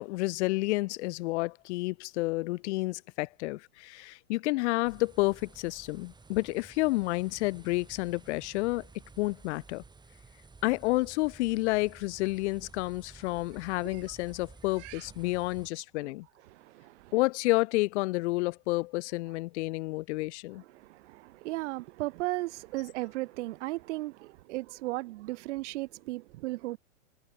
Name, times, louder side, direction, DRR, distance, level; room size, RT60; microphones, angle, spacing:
voice 1, 0.0-8.9 9.2-9.8 10.6-16.3 17.1-20.6, left 22 dB, 55° left, 4.3 m, -30 dB
sound 1, 4.8-15.7, right 4 dB, 10° right, 6.3 m, -53 dB
voice 2, 16.5-17.1 20.7-26.8, right 19 dB, 55° right, 6.0 m, -36 dB
hypercardioid pair, 125°, 41 cm